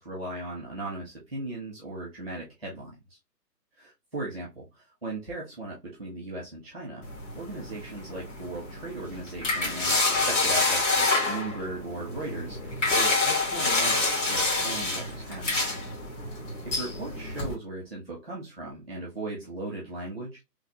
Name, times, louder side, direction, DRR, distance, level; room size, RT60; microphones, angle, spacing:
voice 1, 0.0-3.2 3.8-7.0 7.3-15.7 16.6-20.4, right 2 dB, 5° left, -4 dB, 0.8 m, -38 dB
sound 1, 7.0-17.5, left 3 dB, 45° left, 2.4 m, -28 dB
3.8 x 3.1 x 2.9 m, 0.22 s
hypercardioid pair, 160°, 50 cm